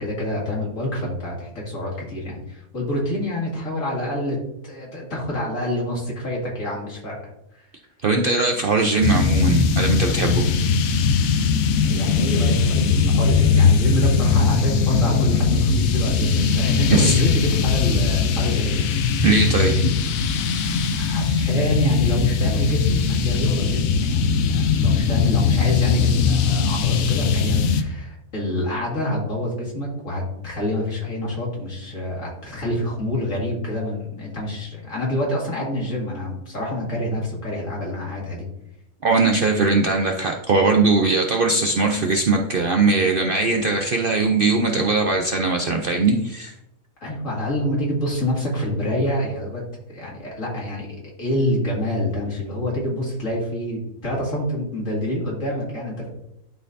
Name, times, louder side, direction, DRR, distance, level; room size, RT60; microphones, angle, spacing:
voice 1, 0.0-4.4 4.6-7.2 7.5-7.6 11.8-18.9 20.6-20.8 21.0-38.5 47.0-49.6 49.9-50.9 51.2-56.1, left 1 dB, 65° left, -3 dB, 2.5 m, -27 dB
voice 2, 8.0-10.5 16.9-17.2 19.2-19.9 39.0-46.5, right 3 dB, 55° right, 3 dB, 0.6 m, -20 dB
sound 1, 9.0-27.8, left 5 dB, 80° left, 1.1 m, -20 dB
11.5 x 4.2 x 2.7 m, 0.83 s
omnidirectional pair, 1.5 m